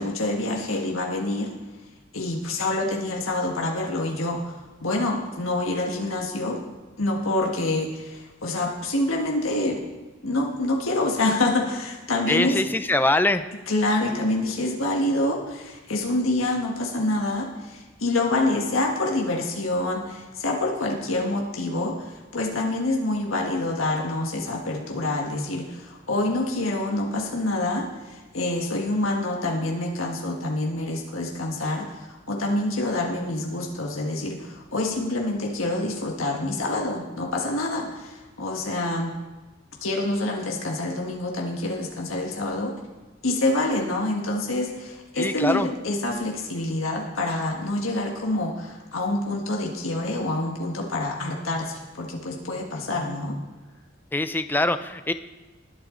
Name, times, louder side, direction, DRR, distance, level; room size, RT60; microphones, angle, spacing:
voice 1, 0.0-1.5 2.1-6.6 7.0-9.8 10.2-12.6 13.7-39.2 39.8-42.8 43.2-53.4, left 2 dB, 90° left, 0 dB, 1.6 m, -27 dB
voice 2, 12.3-13.4 45.2-45.7 54.1-55.1, left 2 dB, 10° left, 10 dB, 0.5 m, -23 dB
20.5 x 8.0 x 3.9 m, 1.2 s
head